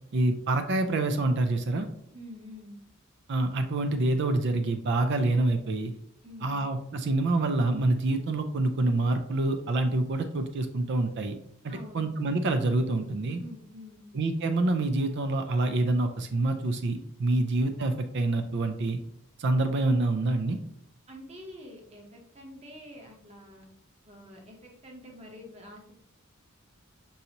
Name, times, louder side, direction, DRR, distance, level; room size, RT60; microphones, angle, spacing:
voice 1, 0.1-1.9 3.3-5.9 6.4-11.3 11.9-13.4 14.1-19.0 19.4-20.6, right 2 dB, 55° right, 7 dB, 0.4 m, -26 dB
voice 2, 2.1-2.8 6.2-6.7 11.7-12.1 13.3-14.1 17.3-17.4 21.1-23.6 24.0-25.9, left 1 dB, 30° right, 1 dB, 0.9 m, -47 dB
5.4 x 2.6 x 2.9 m, 0.69 s
head